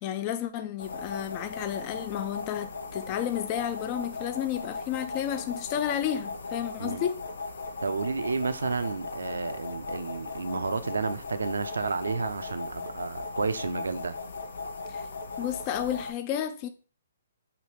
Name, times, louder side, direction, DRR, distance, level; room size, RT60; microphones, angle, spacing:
voice 1, 0.0-7.2 14.9-15.1 15.4-16.7, left 10 dB, 35° left, 0.3 m, -32 dB
sound 1, 0.8-16.1, left 3 dB, 75° left, 0.6 m, -38 dB
voice 2, 7.8-14.1, right 4 dB, 85° right, 0.4 m, -31 dB
5.0 x 2.7 x 3.0 m
hypercardioid pair, 140°, 0 cm